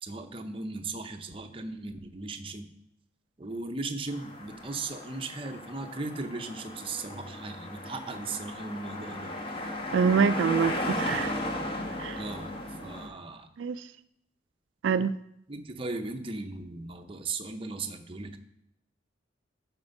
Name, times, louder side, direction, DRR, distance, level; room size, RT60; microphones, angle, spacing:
voice 1, 0.0-2.7 3.4-9.3 9.6-9.7 12.2-12.5 12.8-13.5 15.5-18.4, right 3 dB, 30° right, 6 dB, 0.6 m, -37 dB
sound 1, 4.1-13.1, left 1 dB, 30° left, 1.0 m, -36 dB
voice 2, 9.9-11.3 12.0-12.2 13.6-13.8 14.8-15.1, right 6 dB, 85° right, 12 dB, 0.3 m, -25 dB
10.5 x 4.4 x 5.3 m, 0.77 s
head